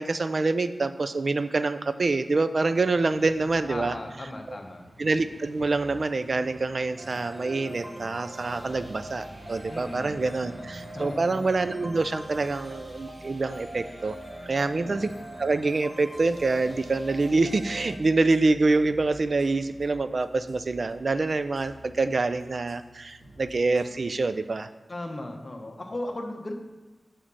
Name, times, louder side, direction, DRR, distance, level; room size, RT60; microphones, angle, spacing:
voice 1, 0.0-4.0 4.5-4.6 5.0-14.2 14.5-15.1 15.4-24.7, right 3 dB, 55° right, 11 dB, 0.4 m, -26 dB
sound 1, 2.6-11.3, right 1 dB, 75° right, 0.9 m, -50 dB
voice 2, 3.7-4.9 9.7-10.2 10.9-11.5 14.8-15.1 24.9-26.5, left 1 dB, 40° left, 3 dB, 1.0 m, -36 dB
sound 2, 7.0-18.0, right 1 dB, 25° right, 1.1 m, -42 dB
sound 3, 8.5-23.9, equal, 90° right, 2.7 m, -52 dB
7.1 x 5.1 x 5.5 m, 1.1 s
wide cardioid pair, 85°, 0 cm